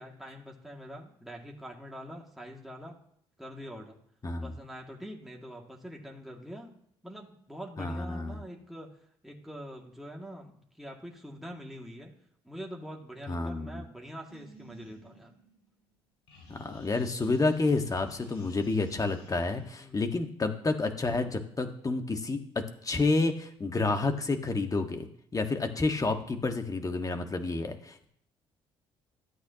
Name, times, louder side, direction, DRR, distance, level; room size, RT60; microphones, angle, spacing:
voice 1, 0.0-3.0 3.4-4.0 4.4-6.8 7.0-8.9 9.2-12.1 12.4-15.3 19.7-20.1, equal, ahead, -1 dB, 2.3 m, -44 dB
voice 2, 7.8-8.4 13.3-13.8 16.5-25.1 25.3-28.0, left 3 dB, 25° left, 6 dB, 1.6 m, -29 dB
sound 1, 14.3-15.9 16.3-19.8, left 1 dB, 80° left, 2.4 m, -55 dB
13.0 x 8.3 x 3.0 m, 0.71 s
hypercardioid pair, 55°, 13 cm